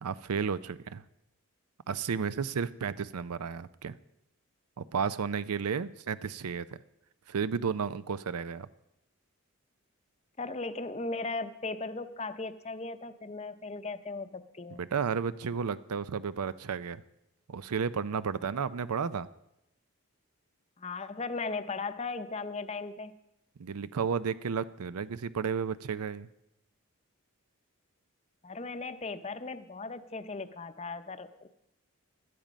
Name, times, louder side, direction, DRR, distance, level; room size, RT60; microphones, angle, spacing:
voice 1, 0.0-1.0 1.9-4.0 4.8-6.8 7.3-8.7 14.8-17.0 17.5-19.3 23.6-26.3, right 6 dB, 90° right, 16 dB, 0.5 m, -32 dB
voice 2, 10.4-14.9 20.8-23.2 28.4-31.5, left 3 dB, 30° left, 11 dB, 0.6 m, -37 dB
16.5 x 12.0 x 5.2 m, 0.84 s
head